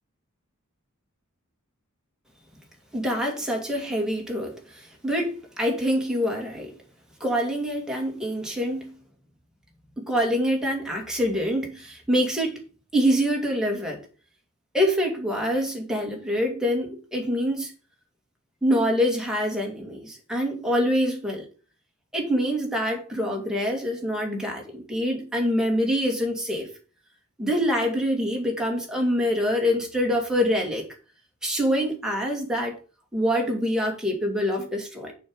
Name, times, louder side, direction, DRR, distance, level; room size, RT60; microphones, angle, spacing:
voice 1, 2.9-6.7 7.2-8.9 10.0-12.6 12.9-14.0 14.7-17.7 18.6-21.4 22.1-26.7 27.4-30.9 31.4-32.8 33.1-35.1, equal, 5° right, 2.3 m, -25 dB
7.2 x 5.7 x 6.3 m
head